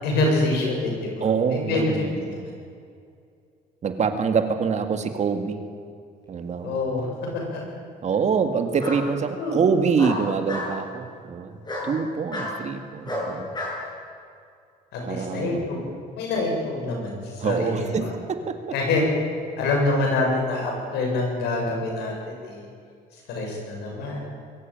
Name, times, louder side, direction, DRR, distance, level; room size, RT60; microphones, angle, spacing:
voice 1, 0.0-1.9 2.2-2.5 6.6-7.1 7.5-7.6 9.4-9.6 14.9-15.8 16.1-18.1 18.7-19.0 19.6-22.1 22.4-22.7 23.3-24.2, left 2 dB, 80° left, -1 dB, 7.7 m, -26 dB
voice 2, 1.2-2.5 3.8-5.6 6.3-6.8 8.0-13.6 15.0-15.7 17.4-18.6, right 5 dB, 45° right, 7 dB, 2.0 m, -25 dB
Bark, 6.6-7.3 8.8-9.0 10.0-10.7 11.6-11.9 12.3-12.5 13.0-13.8, left 1 dB, 25° left, 7.8 m, -31 dB
22.5 x 14.5 x 9.0 m, 2.3 s
cardioid pair, 110°, 17 cm